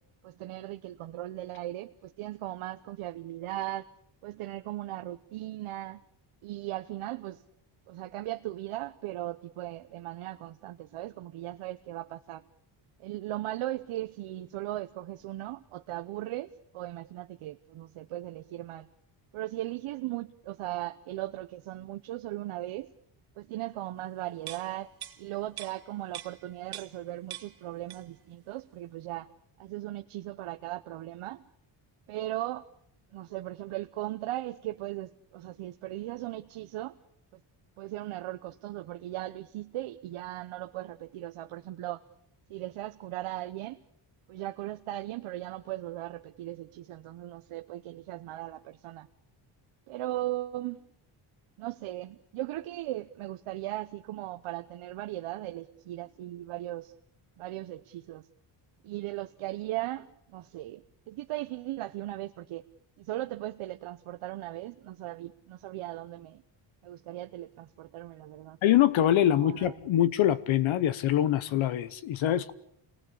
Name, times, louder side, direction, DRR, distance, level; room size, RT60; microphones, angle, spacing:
voice 1, 0.2-3.9 4.2-6.0 6.4-7.4 7.9-12.4 13.0-18.9 19.3-22.9 23.4-24.9 25.2-29.3 29.6-31.4 32.1-32.7 33.1-37.0 37.3-37.4 37.8-42.0 42.5-43.8 44.3-49.1 49.9-50.8 51.6-56.9 57.4-58.3 58.8-62.7 63.0-66.4 66.8-68.6 69.4-69.7, right 15 dB, 90° right, 1.0 m, -38 dB
sound 1, 24.4-27.1 27.3-28.3 28.6-28.7, right 11 dB, 50° right, 1.9 m, -44 dB
voice 2, 68.6-72.5, left 11 dB, 70° left, 1.0 m, -24 dB
28.0 x 19.5 x 8.5 m
cardioid pair, 145°, 48 cm